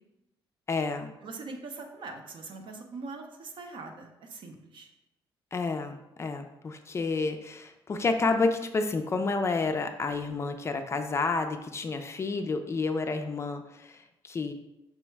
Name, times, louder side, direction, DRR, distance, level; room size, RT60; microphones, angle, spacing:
voice 1, 0.7-1.1 5.5-14.5, left 3 dB, 30° left, 7 dB, 0.3 m, -30 dB
voice 2, 1.2-4.9, right 3 dB, 55° right, 4 dB, 0.7 m, -42 dB
5.5 x 2.1 x 4.5 m, 0.91 s
cardioid pair, 125°, 10 cm